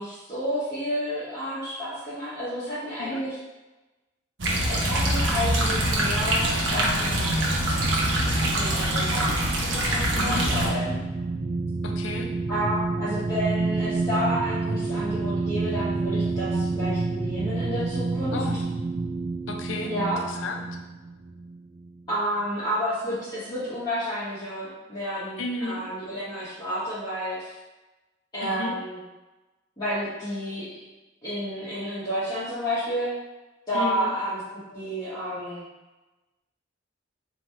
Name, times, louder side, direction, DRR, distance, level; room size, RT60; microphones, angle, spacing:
voice 1, 0.0-3.4 4.7-7.4 8.5-11.0 12.5-18.6 19.8-20.2 22.1-27.6 28.3-29.0 29.8-30.7 31.2-33.1 33.7-35.6, equal, 20° left, -13 dB, 1.0 m, -30 dB
sound 1, 4.4-10.7, right 1 dB, 65° right, 0.7 m, -24 dB
sound 2, 8.9-22.1, right 3 dB, 40° right, 0.4 m, -29 dB
voice 2, 10.1-10.5 11.8-12.3 18.3-18.6 19.5-20.8 25.4-25.8 28.4-28.7 33.7-34.1, left 2 dB, 75° left, 3 dB, 0.5 m, -33 dB
3.1 x 2.7 x 4.4 m, 1.1 s
head